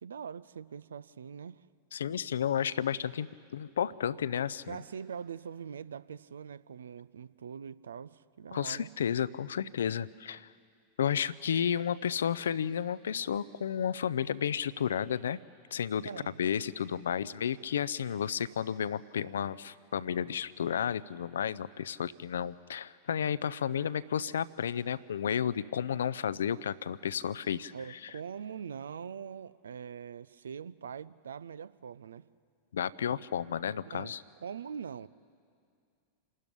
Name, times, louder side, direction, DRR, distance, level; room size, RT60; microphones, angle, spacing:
voice 1, 0.0-1.7 4.7-8.9 16.0-16.4 27.7-32.2 33.8-35.1, right 7 dB, 70° right, 19 dB, 0.5 m, -43 dB
voice 2, 1.9-4.8 8.5-10.5 11.0-15.4 15.7-16.1 16.4-27.7 32.7-34.2, left 8 dB, 65° left, 18 dB, 0.5 m, -32 dB
27.5 x 13.0 x 10.0 m, 2.3 s
figure-of-eight pair, 90°, 0 cm